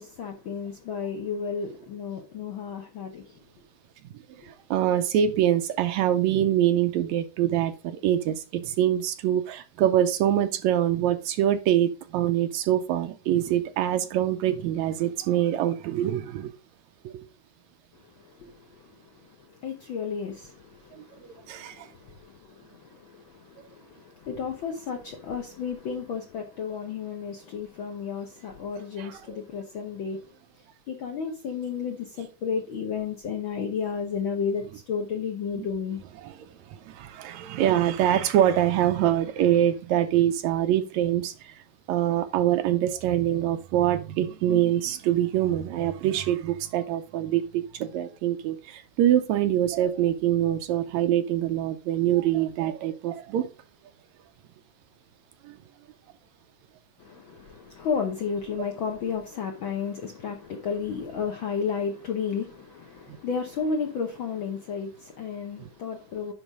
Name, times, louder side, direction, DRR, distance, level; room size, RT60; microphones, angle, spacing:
voice 1, 0.0-3.4 18.0-30.3 30.9-36.0 57.0-66.3, left 6 dB, 65° left, 1.3 m, -33 dB
voice 2, 4.4-16.5 17.0-17.3 20.9-21.9 29.0-29.4 35.6-35.7 36.2-36.4 36.7-41.6 41.9-53.5 55.4-55.6, right 11 dB, 75° right, 1.9 m, -24 dB
10.5 x 4.0 x 4.9 m
omnidirectional pair, 3.5 m